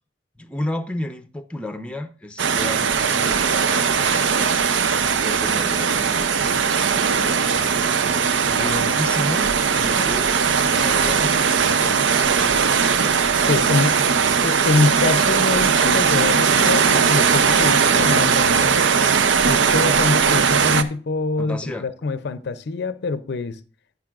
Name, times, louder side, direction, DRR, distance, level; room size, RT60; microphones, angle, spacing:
voice 1, 0.4-4.6 5.2-6.3 7.0-10.4 10.7-14.0 21.4-21.9, left 1 dB, 5° left, 0.6 m, -33 dB
sound 1, 2.4-20.8, right 6 dB, 90° right, 0.6 m, -19 dB
voice 2, 8.4-9.0 13.5-14.0 14.4-18.7 19.4-23.6, left 3 dB, 65° left, 0.5 m, -25 dB
10.5 x 9.3 x 2.4 m
head